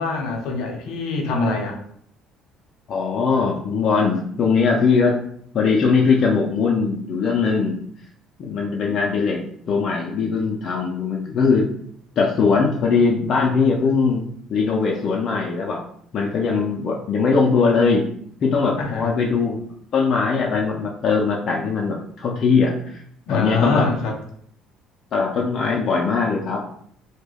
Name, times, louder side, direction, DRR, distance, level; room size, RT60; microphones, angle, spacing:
voice 1, 0.0-1.8 18.8-19.1 23.3-24.1, left 3 dB, 80° left, 1 dB, 0.6 m, -24 dB
voice 2, 2.9-5.1 5.5-7.8 8.4-9.4 9.7-11.7 12.2-14.2 14.5-15.8 16.1-18.1 18.4-19.6 19.9-23.0 23.3-23.9 25.1-26.6, left 5 dB, 40° left, -2 dB, 0.4 m, -20 dB
2.2 x 2.1 x 3.3 m, 0.65 s
cardioid pair, 150°, 0 cm